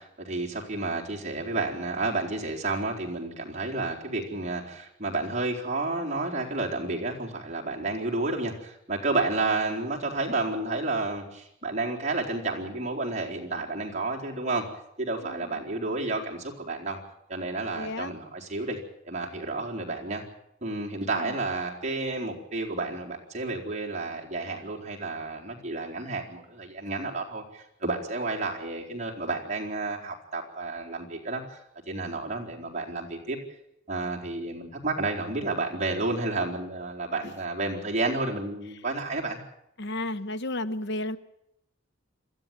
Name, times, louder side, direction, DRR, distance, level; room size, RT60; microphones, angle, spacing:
voice 1, 0.0-14.7 15.0-17.0 17.3-18.8 19.0-20.2 20.6-31.6 31.9-33.4 33.9-39.4, right 3 dB, 35° right, -2 dB, 4.2 m, -31 dB
voice 2, 15.2-15.6 17.8-18.1 21.1-21.3 39.8-41.2, left 1 dB, 60° left, 12 dB, 1.0 m, -33 dB
28.0 x 13.5 x 9.1 m, 0.80 s
head